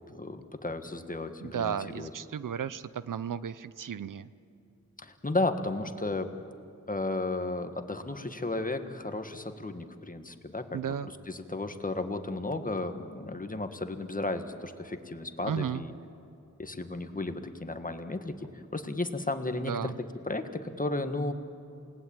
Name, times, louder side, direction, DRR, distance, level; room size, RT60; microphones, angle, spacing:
voice 1, 0.0-2.1 5.0-6.3 6.9-10.9 11.3-15.9 16.6-19.9 20.2-21.3, left 2 dB, 25° left, 8 dB, 1.7 m, -34 dB
voice 2, 1.4-4.3 10.7-11.1 15.5-15.8 19.6-20.0, right 8 dB, 90° right, 16 dB, 0.7 m, -34 dB
28.5 x 19.0 x 8.9 m, 2.6 s
wide cardioid pair, 80°, 31 cm